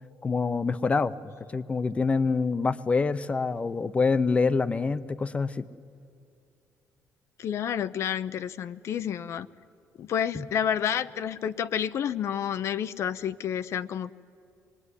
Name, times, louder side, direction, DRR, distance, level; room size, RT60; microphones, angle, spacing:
voice 1, 0.2-5.6 10.3-10.5, left 4 dB, 20° left, 14 dB, 0.7 m, -26 dB
voice 2, 7.4-9.5 10.0-14.1, left 9 dB, 55° left, 13 dB, 0.6 m, -29 dB
26.0 x 21.0 x 9.8 m, 2.5 s
cardioid pair, 140°, 6 cm